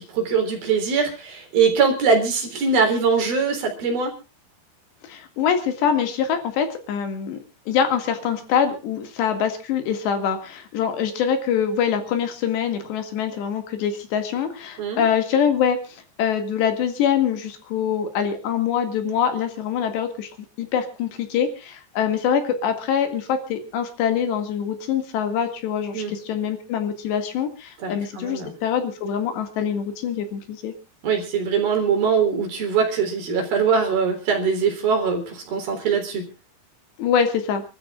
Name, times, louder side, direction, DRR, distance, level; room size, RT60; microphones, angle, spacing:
voice 1, 0.0-4.1 14.8-15.0 25.9-26.1 27.8-28.5 31.0-36.3, right 5 dB, 55° right, 4 dB, 5.3 m, -22 dB
voice 2, 5.1-20.3 20.6-30.7 37.0-37.6, left 8 dB, 75° left, 7 dB, 4.2 m, -24 dB
28.5 x 13.5 x 2.4 m, 0.33 s
omnidirectional pair, 5.1 m